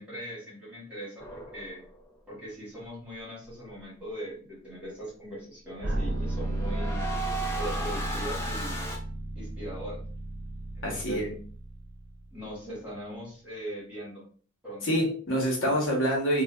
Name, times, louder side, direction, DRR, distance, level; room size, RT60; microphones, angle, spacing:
voice 1, 0.0-1.8 2.3-7.0 7.6-8.8 9.3-10.0 10.7-11.4 12.3-14.2 14.6-14.9, equal, 5° right, -7 dB, 1.5 m, -40 dB
sound 1, 1.2-2.1 5.8-9.0, right 1 dB, 15° left, 0.5 m, -36 dB
sound 2, 5.8-12.7, right 1 dB, 65° right, 0.6 m, -34 dB
voice 2, 10.8-11.3 14.8-16.4, equal, 85° left, -1 dB, 1.0 m, -26 dB
3.3 x 2.3 x 2.2 m, 0.43 s
head